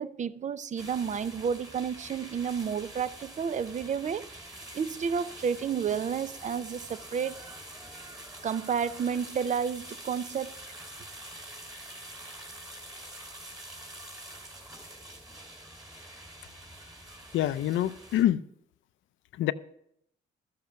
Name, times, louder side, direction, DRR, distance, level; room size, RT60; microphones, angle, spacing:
voice 1, 0.0-7.4 8.4-10.6, right 7 dB, 35° right, 0.5 m, -31 dB
sound 1, 0.8-18.2, right 1 dB, 20° right, 3.2 m, -46 dB
voice 2, 17.3-18.4 19.4-19.5, left 12 dB, 75° left, 0.6 m, -25 dB
13.0 x 7.6 x 5.8 m
cardioid pair, 90°, 20 cm